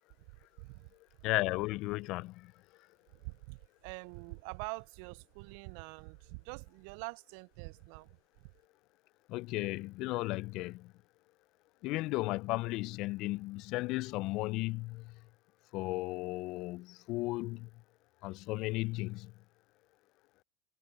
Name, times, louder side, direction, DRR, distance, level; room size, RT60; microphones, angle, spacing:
voice 1, 0.6-0.9 3.1-8.5, right 32 dB, 55° right, 0.5 m, -45 dB
voice 2, 1.2-2.5 9.3-10.9 11.8-15.2 15.7-17.7 18.2-19.3, left 21 dB, 50° left, 0.6 m, -35 dB
hypercardioid pair, 90°, 0 cm